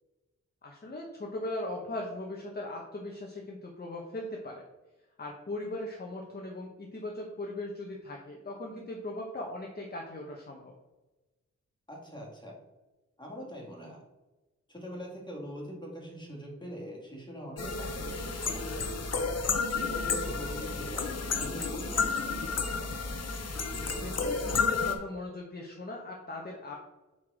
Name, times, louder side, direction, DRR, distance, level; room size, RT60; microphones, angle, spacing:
voice 1, 0.6-4.6 5.2-10.7 23.8-26.8, left 1 dB, 35° left, -1 dB, 1.0 m, -39 dB
voice 2, 11.9-12.6 13.2-14.0 14.7-18.9 19.7-22.9, equal, 15° left, -2 dB, 2.1 m, -43 dB
sound 1, 17.6-24.9, left 4 dB, 60° left, 0.9 m, -31 dB
5.8 x 4.7 x 4.9 m, 1.1 s
wide cardioid pair, 105°, 29 cm